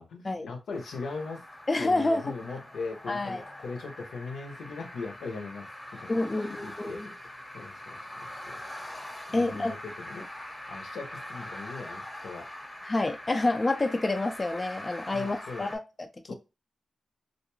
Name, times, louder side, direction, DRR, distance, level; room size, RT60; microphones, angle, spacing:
voice 1, 0.0-1.4 1.8-7.1 7.5-8.6 9.3-10.3 10.7-12.5 15.1-15.7 16.3-16.4, left 4 dB, 80° left, 0.6 m, -40 dB
sound 1, 0.7-15.8, left 1 dB, 15° left, 0.9 m, -43 dB
voice 2, 1.7-2.2 3.1-3.4 6.1-7.1 9.3-9.7 12.8-16.3, left 2 dB, 35° left, 0.4 m, -28 dB
2.4 x 2.2 x 3.0 m
cardioid pair, 45°, 0 cm